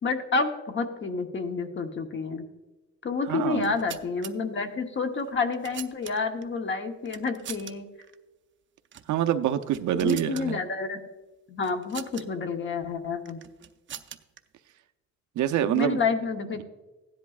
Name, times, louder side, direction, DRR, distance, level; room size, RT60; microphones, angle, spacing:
voice 1, 0.0-2.4 3.0-7.9 10.0-11.0 11.5-13.4 15.7-16.6, left 4 dB, 40° left, 5 dB, 1.0 m, -29 dB
voice 2, 3.3-3.7 9.1-10.6 15.4-16.0, right 10 dB, 80° right, 8 dB, 0.7 m, -26 dB
sound 1, 3.5-4.3 5.2-6.4 7.1-7.7 8.0-8.2 8.9-9.1 9.5-10.5 11.6-12.3 13.3-14.4, right 9 dB, 40° right, 0.5 m, -43 dB
15.5 x 10.5 x 2.4 m, 1.1 s
cardioid pair, 145°, 29 cm